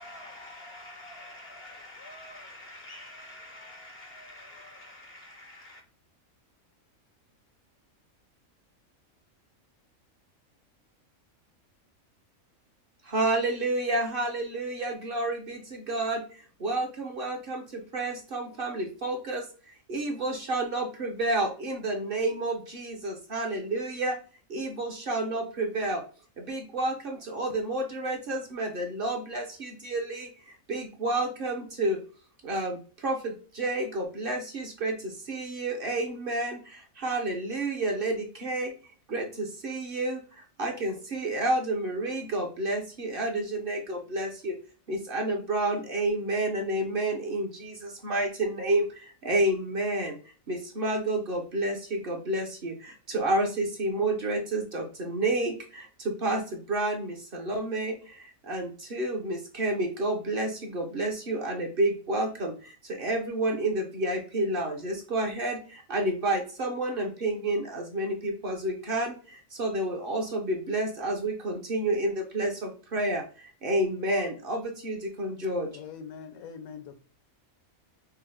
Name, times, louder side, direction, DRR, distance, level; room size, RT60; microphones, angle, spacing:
voice 1, 0.0-5.8, left 1 dB, 65° left, 0.6 m, -46 dB
voice 2, 13.0-24.2 24.5-26.0 26.4-32.0 32.4-38.7 39.1-44.6 44.9-50.2 50.5-75.7, right 2 dB, 50° right, 0.8 m, -30 dB
voice 3, 75.7-77.0, left 6 dB, 85° left, 1.1 m, -43 dB
5.6 x 2.0 x 3.8 m
omnidirectional pair, 1.5 m